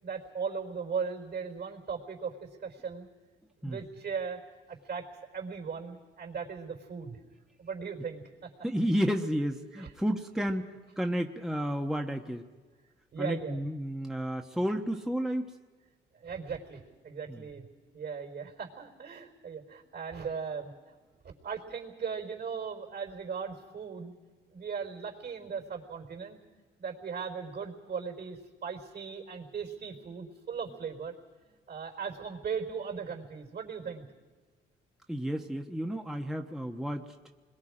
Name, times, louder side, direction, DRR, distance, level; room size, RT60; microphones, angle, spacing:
voice 1, 0.0-3.1 3.6-4.4 4.7-5.1 5.3-7.2 7.6-8.5 9.7-9.9 13.1-13.6 16.2-20.9 21.2-24.1 24.5-26.4 26.8-31.1 31.7-34.1, right 6 dB, 55° right, 3 dB, 4.4 m, -38 dB
voice 2, 8.6-12.5 13.2-15.6 17.3-17.4 35.1-37.0, equal, ahead, 3 dB, 1.2 m, -31 dB
27.5 x 22.0 x 5.0 m, 1.4 s
cardioid pair, 90°, 20 cm